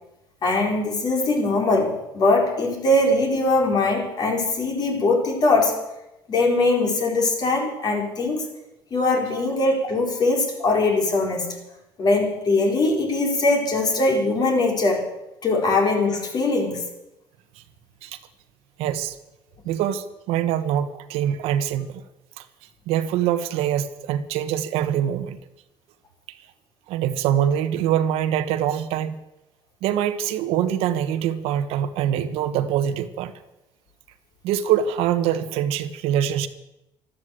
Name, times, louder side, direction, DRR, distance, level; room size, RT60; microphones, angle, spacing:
voice 1, 0.4-5.8 6.3-8.5 8.9-11.6 12.0-15.1 15.4-16.8, left 2 dB, 45° left, 2 dB, 4.5 m, -21 dB
voice 2, 18.8-19.2 19.6-22.0 22.4-22.5 22.9-25.4 26.3-26.4 26.9-29.2 29.8-33.3 34.4-36.5, right 10 dB, 85° right, 10 dB, 1.3 m, -24 dB
13.0 x 12.5 x 7.8 m, 0.92 s
cardioid pair, 115°, 10 cm